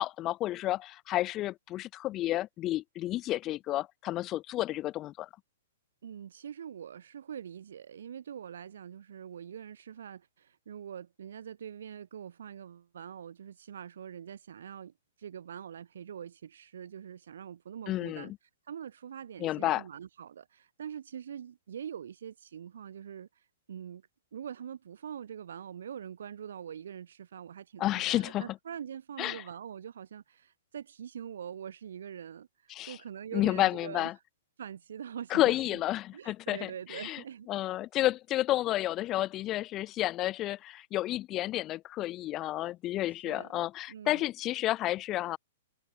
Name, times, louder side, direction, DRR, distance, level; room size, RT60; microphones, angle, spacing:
voice 1, 0.0-5.3 17.9-18.3 19.4-19.8 27.8-28.5 29.2-29.4 32.7-33.0 33.3-34.1 35.3-37.2 37.5-45.4, left 15 dB, 25° left, 0.8 m, -31 dB
voice 2, 6.0-18.3 18.6-24.0 24.3-34.1 34.6-35.8 36.1-37.5 43.1-43.6 43.9-44.3, right 8 dB, 80° right, 1.5 m, -44 dB
hypercardioid pair, 150°, 0 cm